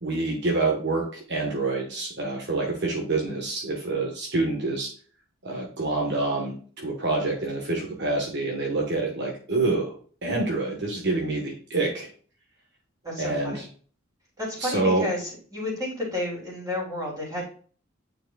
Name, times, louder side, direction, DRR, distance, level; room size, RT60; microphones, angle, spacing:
voice 1, 0.0-4.9 5.4-12.1 13.2-13.6 14.6-15.1, right 2 dB, 55° right, 0 dB, 1.2 m, -27 dB
voice 2, 13.0-13.6 14.4-17.4, left 1 dB, 15° right, -4 dB, 3.1 m, -31 dB
9.0 x 4.7 x 2.3 m, 0.43 s
head